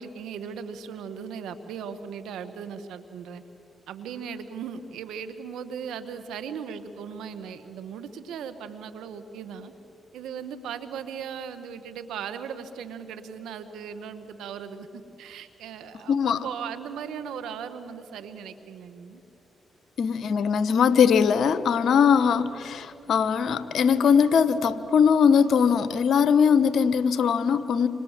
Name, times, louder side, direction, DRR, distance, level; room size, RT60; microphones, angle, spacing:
voice 1, 0.0-3.4 3.9-9.7 10.1-19.2, right 7 dB, 85° right, 10 dB, 1.5 m, -38 dB
voice 2, 16.1-16.5 20.0-27.9, left 6 dB, 70° left, 14 dB, 1.1 m, -21 dB
27.0 x 27.0 x 7.6 m, 2.9 s
supercardioid pair, 50°, 0 cm